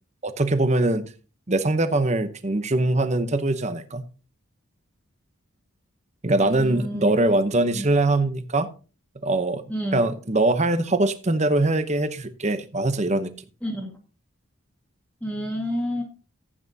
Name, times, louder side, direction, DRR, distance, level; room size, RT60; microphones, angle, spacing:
voice 1, 0.2-1.0 1.5-4.0 6.2-8.7 9.2-9.6 9.9-13.3, right 2 dB, 30° right, 0.8 m, -22 dB
voice 2, 6.4-7.1 7.7-7.8 9.7-10.1 13.6-13.9 15.2-16.0, equal, 5° left, 1.7 m, -29 dB
14.5 x 8.6 x 2.8 m
head